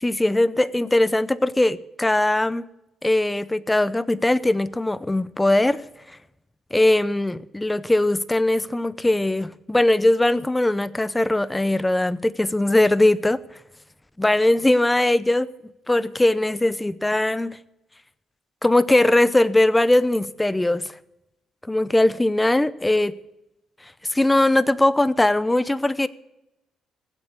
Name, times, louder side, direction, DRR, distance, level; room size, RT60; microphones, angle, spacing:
voice 1, 0.0-2.6 3.0-5.8 6.7-13.4 14.2-15.5 15.9-17.6 18.6-20.8 21.6-23.2 24.1-26.1, left 1 dB, 10° left, 0.7 m, -20 dB
16.0 x 8.0 x 8.5 m
cardioid pair, 90°, 0 cm